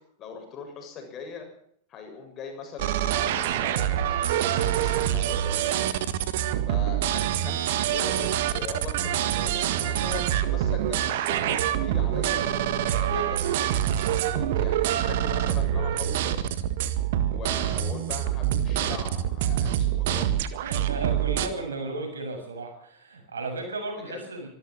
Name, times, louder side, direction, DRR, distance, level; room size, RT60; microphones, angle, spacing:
voice 1, 0.2-1.5 1.9-5.9 6.7-12.4 13.0-16.6 17.3-20.4 24.0-24.2, left 5 dB, 30° left, 4 dB, 7.0 m, -40 dB
sound 1, 2.8-21.5, right 11 dB, 55° right, 1.7 m, -26 dB
voice 2, 20.6-24.5, right 3 dB, 70° right, 4 dB, 6.7 m, -34 dB
25.0 x 13.5 x 7.8 m, 0.67 s
figure-of-eight pair, 90°, 0 cm